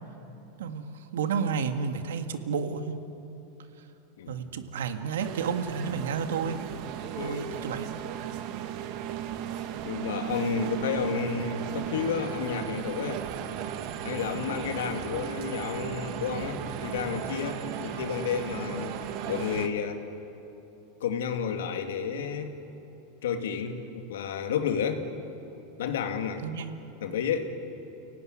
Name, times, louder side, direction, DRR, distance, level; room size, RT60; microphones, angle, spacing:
voice 1, 0.6-3.0 4.3-6.6 7.2-8.1 26.4-26.8, right 6 dB, 90° right, 7 dB, 1.8 m, -31 dB
sound 1, 5.2-19.7, right 10 dB, 55° right, 1.8 m, -35 dB
voice 2, 7.2-7.6 9.8-13.3 14.0-19.0 19.3-20.0 21.0-22.6 23.2-25.1 25.8-26.4 27.0-27.5, left 7 dB, 90° left, 5 dB, 2.5 m, -31 dB
30.0 x 18.0 x 9.7 m, 2.9 s
supercardioid pair, 135°, 0 cm